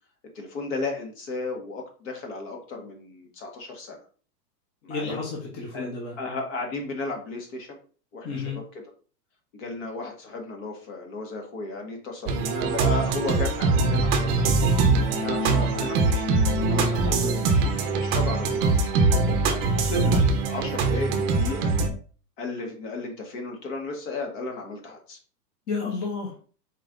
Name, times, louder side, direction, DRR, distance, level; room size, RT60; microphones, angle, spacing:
voice 1, 0.4-4.0 4.8-5.2 5.7-5.9 6.2-7.8 8.1-8.8 9.5-14.8 15.1-16.3 16.7-18.9 19.5-20.2 20.5-21.8 22.4-25.2, left 3 dB, 50° left, 2 dB, 1.7 m, -34 dB
voice 2, 4.9-6.2 8.2-8.6 15.5-15.7 17.0-17.3 25.7-26.3, left 4 dB, 20° left, -1 dB, 0.7 m, -32 dB
sound 1, 12.3-21.9, right 3 dB, 30° right, 0.7 m, -22 dB
4.4 x 3.1 x 3.8 m, 0.40 s
supercardioid pair, 160°, 49 cm